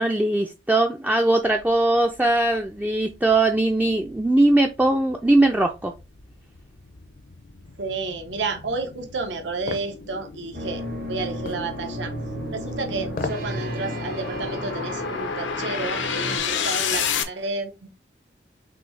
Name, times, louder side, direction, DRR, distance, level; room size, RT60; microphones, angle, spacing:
voice 1, 0.0-5.9, right 2 dB, 10° right, 0.3 m, -20 dB
sound 1, 2.5-2.6 3.1-17.2, left 6 dB, 90° left, 0.7 m, -32 dB
voice 2, 7.8-10.8 11.1-12.1 12.5-17.9, right 3 dB, 80° right, 0.8 m, -31 dB
sound 2, 9.7-9.9 11.5-11.7 13.1-13.5 13.9-14.0, left 4 dB, 50° left, 0.5 m, -31 dB
sound 3, 10.5-16.4, right 1 dB, 50° right, 0.8 m, -34 dB
6.1 x 2.7 x 3.2 m
head